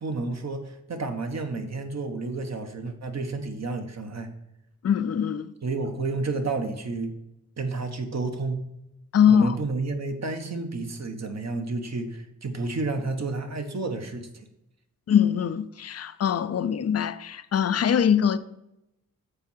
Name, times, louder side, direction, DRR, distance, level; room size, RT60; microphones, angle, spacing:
voice 1, 0.0-4.3 5.6-7.1 7.6-8.6 9.3-14.5, right 3 dB, 50° right, 1.2 m, -31 dB
voice 2, 4.8-5.5 9.1-9.6 15.1-18.4, left 8 dB, 45° left, 0.5 m, -22 dB
6.8 x 4.6 x 6.2 m
cardioid pair, 55°, 34 cm